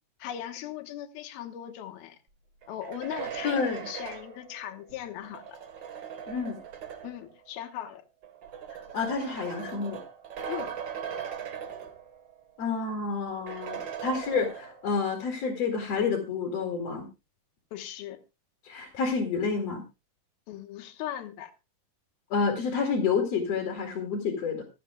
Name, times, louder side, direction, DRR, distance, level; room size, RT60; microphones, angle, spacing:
voice 1, 0.2-2.2 2.7-3.6 3.9-5.6 7.0-8.0 10.5-10.7 17.7-18.2 20.5-21.5, left 11 dB, 80° left, 3.1 m, -38 dB
sound 1, 2.6-7.3 8.2-12.4 12.7-12.8 13.5-15.0, right 8 dB, 60° right, 1.2 m, -40 dB
voice 2, 3.4-3.9 6.3-6.6 8.9-10.0 12.6-17.1 18.6-19.8 22.3-24.6, left 5 dB, 50° left, 2.9 m, -29 dB
25.5 x 8.7 x 2.3 m
omnidirectional pair, 4.3 m